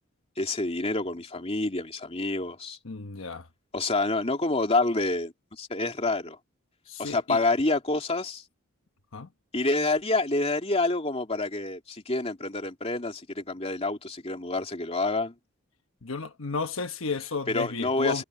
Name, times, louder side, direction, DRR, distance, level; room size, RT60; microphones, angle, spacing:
voice 1, 0.4-2.8 3.7-6.4 7.0-8.4 9.5-15.3 17.5-18.2, left 2 dB, 30° left, 2.8 m, -28 dB
voice 2, 2.8-3.5 6.9-7.4 9.1-9.3 16.0-18.2, left 4 dB, 80° left, 1.1 m, -32 dB
head